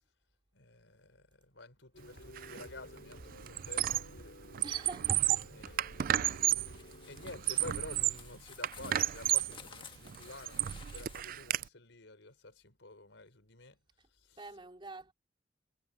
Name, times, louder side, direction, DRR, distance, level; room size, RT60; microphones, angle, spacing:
voice 1, 0.5-4.4 5.5-6.4 7.1-13.8 14.1-14.4, left 2 dB, 90° left, 4.5 m, -50 dB
sound 1, 1.9-7.9, left 1 dB, 70° left, 7.5 m, -54 dB
Squeak, 2.4-2.6 3.0-4.2 4.5-6.8 7.2-8.3 8.6-9.6 10.1-11.6, right 13 dB, 50° right, 0.4 m, -32 dB
voice 2, 4.6-5.5 14.0-14.1 14.4-15.1, right 3 dB, 25° right, 3.4 m, -45 dB
sound 2, 6.4-11.2, left 6 dB, 30° left, 1.6 m, -54 dB
head